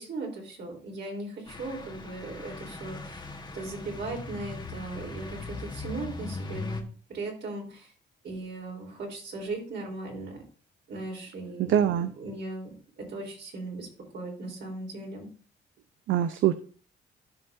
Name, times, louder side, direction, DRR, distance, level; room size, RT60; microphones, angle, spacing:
voice 1, 0.0-3.2 3.5-7.9 8.2-10.4 10.9-13.9 14.1-15.3, right 2 dB, 60° right, 0 dB, 3.7 m, -38 dB
sound 1, 1.5-6.8, left 3 dB, 20° left, 1.4 m, -39 dB
voice 2, 11.6-12.1 16.1-16.5, right 10 dB, 80° right, 11 dB, 0.6 m, -23 dB
14.5 x 5.5 x 2.6 m, 0.40 s
cardioid pair, 90°, 20 cm